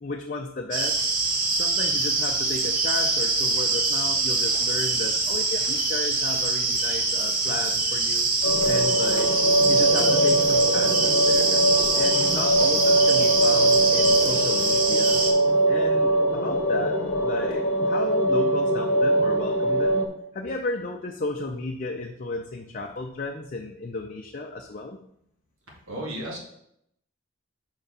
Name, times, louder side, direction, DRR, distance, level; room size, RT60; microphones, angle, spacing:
voice 1, 0.0-1.0 1.5-8.3 8.6-9.3 9.6-11.6 11.9-15.2 15.7-16.9 17.2-25.0, left 2 dB, 40° left, 1 dB, 0.5 m, -33 dB
sound 1, 0.7-15.3, right 3 dB, 40° right, 1.0 m, -24 dB
sound 2, 8.4-20.1, right 1 dB, 70° left, 0.9 m, -22 dB
voice 2, 25.9-26.4, right 1 dB, 80° right, -2 dB, 2.2 m, -33 dB
5.7 x 4.5 x 5.1 m, 0.73 s
head